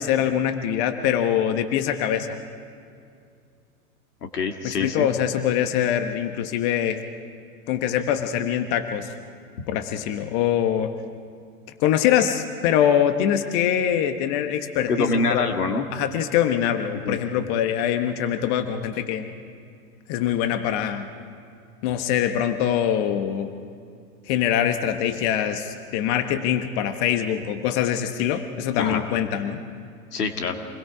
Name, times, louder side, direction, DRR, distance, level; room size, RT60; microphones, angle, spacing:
voice 1, 0.0-2.4 4.6-7.0 7.7-9.1 9.7-10.9 11.8-15.5 15.9-19.3 20.1-21.1 21.8-23.5 24.3-29.6, left 10 dB, 45° left, 7 dB, 1.4 m, -23 dB
voice 2, 4.3-5.1 14.9-15.8 17.0-17.2 28.8-29.0 30.1-30.6, left 4 dB, 85° left, 5 dB, 2.1 m, -25 dB
28.0 x 21.0 x 4.9 m, 2.4 s
hypercardioid pair, 105°, 45 cm